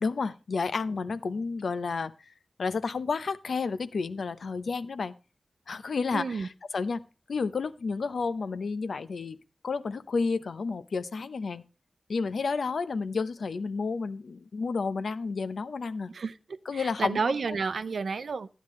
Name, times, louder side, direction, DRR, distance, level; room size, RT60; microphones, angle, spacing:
voice 1, 0.0-2.3 2.6-5.1 5.7-7.0 7.3-9.4 9.6-11.6 12.1-16.1 16.7-17.2, left 4 dB, 90° left, 0.7 m, -31 dB
voice 2, 6.1-6.5 16.1-18.5, right 5 dB, 85° right, 0.7 m, -31 dB
12.5 x 10.0 x 3.1 m
wide cardioid pair, 105°, 0 cm